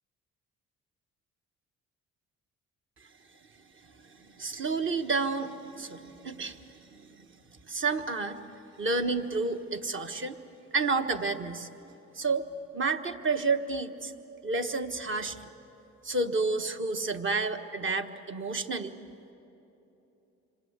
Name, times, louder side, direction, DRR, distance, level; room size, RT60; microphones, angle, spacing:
voice 1, 4.4-6.6 6.9-7.0 7.7-8.4 8.8-10.4 10.7-11.7 12.2-12.5 12.7-14.1 14.4-15.5 16.0-18.9, right 3 dB, 40° right, 7 dB, 1.5 m, -30 dB
27.0 x 25.0 x 8.1 m, 3.0 s
cardioid pair, 90°, 30 cm